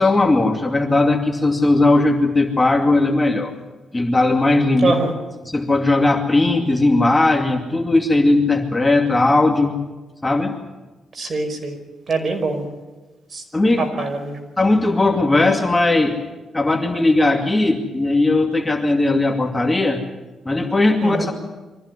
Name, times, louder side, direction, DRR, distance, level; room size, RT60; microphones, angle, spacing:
voice 1, 0.0-3.5 3.9-4.9 5.4-9.8 10.2-10.6 13.5-14.1 14.6-16.2 16.5-20.0 20.5-21.3, left 2 dB, 15° left, 3 dB, 2.5 m, -18 dB
voice 2, 11.2-11.7 12.1-12.6 13.3-13.4 14.0-14.4 21.0-21.2, right 3 dB, 40° right, 5 dB, 5.3 m, -23 dB
24.0 x 15.0 x 9.7 m, 1.2 s
cardioid pair, 90°, 0 cm